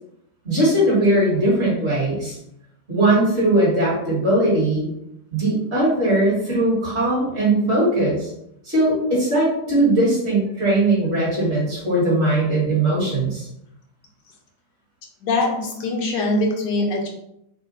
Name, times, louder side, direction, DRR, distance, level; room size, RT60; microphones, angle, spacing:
voice 1, 0.4-2.4 2.9-4.9 5.3-8.3 8.6-13.5, right 1 dB, 40° right, -6 dB, 1.8 m, -19 dB
voice 2, 15.2-17.1, left 2 dB, 80° left, 0 dB, 1.5 m, -22 dB
4.3 x 2.4 x 3.8 m, 0.79 s
omnidirectional pair, 1.8 m